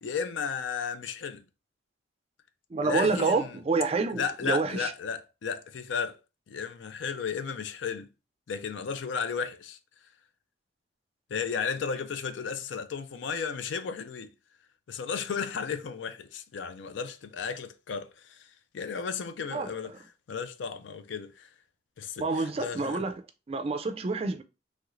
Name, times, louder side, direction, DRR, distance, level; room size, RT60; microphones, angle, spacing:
voice 1, 0.0-1.4 2.8-3.6 4.1-6.2 6.5-8.1 8.5-9.8 11.3-14.3 14.9-19.9 20.3-21.5 22.0-23.0, left 6 dB, 80° left, 0.4 m, -34 dB
voice 2, 2.7-4.9 19.5-19.7 22.2-23.1 23.5-24.4, right 3 dB, 30° right, 0.3 m, -28 dB
3.1 x 2.4 x 3.0 m
head